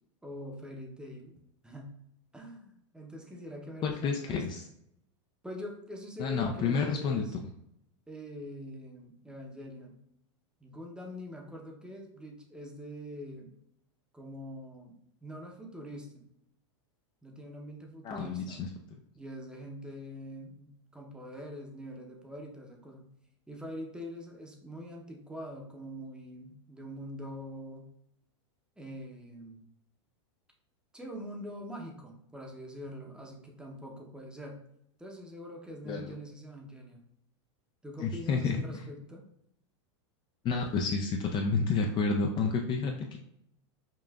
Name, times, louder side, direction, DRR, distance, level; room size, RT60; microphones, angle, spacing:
voice 1, 0.2-1.3 1.6-2.0 2.3-4.4 5.4-7.4 8.1-10.0 10.6-13.5 14.1-15.0 15.2-16.3 17.2-18.7 19.1-23.1 23.5-27.9 28.8-29.6 30.9-34.6 35.0-37.1 37.8-39.2, equal, 5° right, 0 dB, 0.7 m, -44 dB
voice 2, 3.8-4.7 6.2-7.2 18.0-18.7 35.9-36.1 38.0-38.8 40.4-43.2, left 4 dB, 30° left, 2 dB, 0.4 m, -30 dB
5.5 x 2.4 x 2.3 m, 0.76 s
hypercardioid pair, 125°, 15 cm